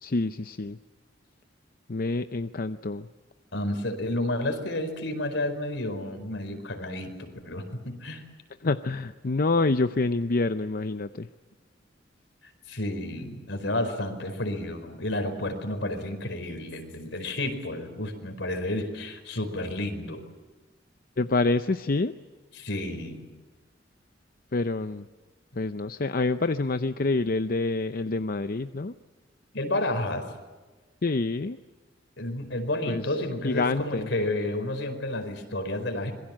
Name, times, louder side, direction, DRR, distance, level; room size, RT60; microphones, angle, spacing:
voice 1, 0.0-0.8 1.9-3.1 8.6-11.3 21.2-22.2 24.5-25.1 25.6-28.9 31.0-31.6 32.9-33.1 33.4-34.1, left 3 dB, 50° left, 10 dB, 0.7 m, -27 dB
voice 2, 3.5-8.2 12.7-20.2 22.5-23.3 29.5-30.3 32.2-36.1, left 1 dB, 75° left, 7 dB, 4.7 m, -31 dB
26.5 x 22.5 x 7.6 m, 1.3 s
head